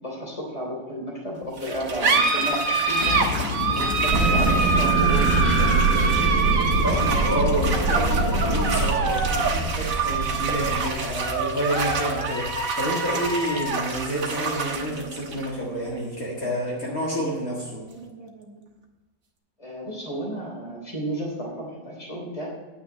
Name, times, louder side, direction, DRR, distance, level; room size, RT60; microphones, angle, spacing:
voice 1, 0.0-3.2 3.7-4.5 4.8-5.7 19.6-22.5, right 1 dB, 15° left, -2 dB, 3.1 m, -32 dB
sound 1, 1.6-18.6, right 4 dB, 50° right, 1.5 m, -26 dB
sound 2, 3.0-8.9, left 6 dB, 75° left, 1.6 m, -29 dB
sound 3, 4.1-10.9, right 4 dB, 80° right, 1.7 m, -24 dB
voice 2, 6.8-17.8, equal, 50° left, -5 dB, 2.2 m, -29 dB
9.8 x 6.3 x 8.1 m, 1.2 s
omnidirectional pair, 2.0 m